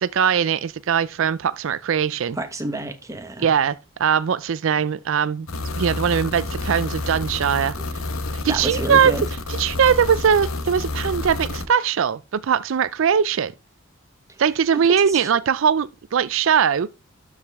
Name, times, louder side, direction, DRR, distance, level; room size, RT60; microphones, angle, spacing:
voice 1, 0.0-2.4 3.4-7.8 8.4-9.2 9.5-13.5 14.4-16.9, right 7 dB, 65° right, 0.4 m, -20 dB
voice 2, 2.3-3.5 8.2-9.3 14.3-14.4 14.7-15.3, right 2 dB, 15° right, 1.0 m, -30 dB
sound 1, 5.5-11.6, left 2 dB, 80° left, 1.2 m, -29 dB
12.0 x 4.9 x 3.5 m
head